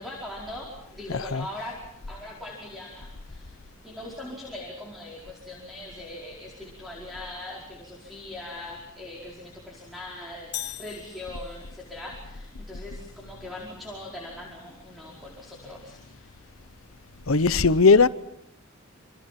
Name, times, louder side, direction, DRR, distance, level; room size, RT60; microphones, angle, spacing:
voice 1, 0.0-1.8 2.1-3.5 3.8-16.3, left 1 dB, ahead, 5.0 m, -41 dB
voice 2, 1.1-1.4 17.3-18.1, left 4 dB, 90° left, 0.9 m, -18 dB
sound 1, 10.5-11.9, left 13 dB, 55° left, 1.0 m, -38 dB
28.5 x 26.5 x 6.0 m
head